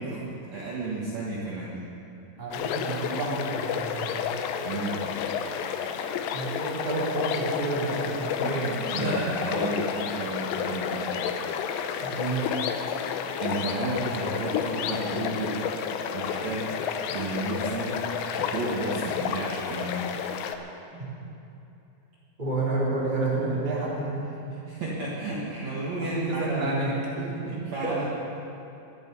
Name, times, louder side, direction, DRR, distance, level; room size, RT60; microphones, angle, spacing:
voice 1, 0.0-1.8 4.6-5.0 8.4-11.1 12.9-13.0 13.4-15.5 16.1-16.7 17.1-18.0 18.3-20.0 24.5-26.8 27.5-28.1, right 2 dB, 70° right, -6 dB, 1.7 m, -32 dB
voice 2, 2.4-4.3 6.3-9.1 12.0-12.5 20.9-21.2 22.4-24.5 26.0-28.1, right 2 dB, 15° right, -6 dB, 2.1 m, -30 dB
sound 1, 2.5-20.6, left 7 dB, 80° left, 2.6 m, -31 dB
22.5 x 9.5 x 5.5 m, 2.8 s
omnidirectional pair, 5.8 m